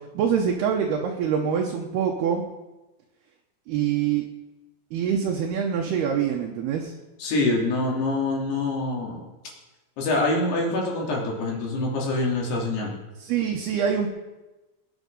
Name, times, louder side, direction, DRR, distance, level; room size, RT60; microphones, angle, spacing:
voice 1, 0.1-2.4 3.7-4.3 4.9-6.9 13.2-14.1, right 7 dB, 70° right, 1 dB, 2.7 m, -25 dB
voice 2, 7.2-9.2 10.0-12.9, left 2 dB, 60° left, -2 dB, 4.7 m, -25 dB
20.0 x 9.8 x 5.4 m, 1.1 s
omnidirectional pair, 5.4 m